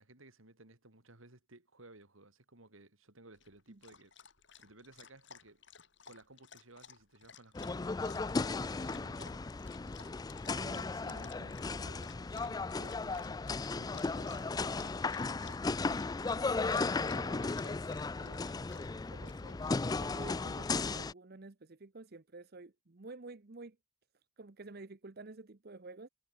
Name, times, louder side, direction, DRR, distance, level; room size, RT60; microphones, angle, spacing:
voice 1, 0.0-4.1 4.6-5.7 6.1-17.6, right 2 dB, 75° right, 3.6 m, -58 dB
Dog, 3.3-20.7, left 7 dB, 60° left, 4.7 m, -57 dB
sound 1, 7.5-21.1, left 3 dB, 20° left, 0.3 m, -35 dB
sound 2, 13.8-19.7, right 2 dB, 10° right, 7.5 m, -69 dB
voice 2, 16.9-23.8 24.4-26.1, right 3 dB, 50° right, 0.8 m, -51 dB
head